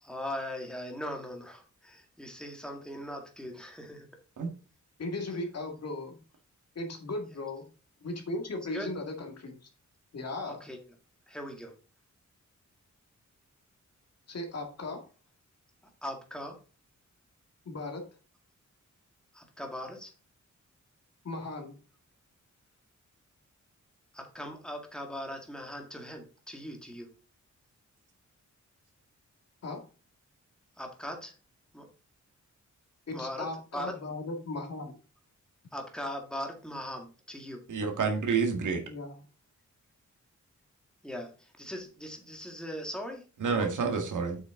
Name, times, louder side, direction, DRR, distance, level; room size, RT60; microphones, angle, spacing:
voice 1, 0.0-4.1 8.7-8.9 10.4-10.8 11.3-11.7 16.0-16.6 19.3-20.1 24.1-27.1 30.8-31.3 31.7-31.9 33.1-33.5 33.7-33.9 35.7-37.6 41.0-43.7, equal, 5° left, 2 dB, 1.9 m, -40 dB
voice 2, 5.0-6.2 6.8-7.7 8.0-9.6 10.1-10.6 14.3-15.0 17.7-18.0 21.2-21.8 29.6-29.8 33.1-35.0 38.5-39.2, left 2 dB, 55° left, 3 dB, 2.2 m, -37 dB
voice 3, 37.7-38.8 43.4-44.4, right 5 dB, 90° right, 3 dB, 2.0 m, -28 dB
7.8 x 6.2 x 3.8 m, 0.34 s
wide cardioid pair, 145°, 30 cm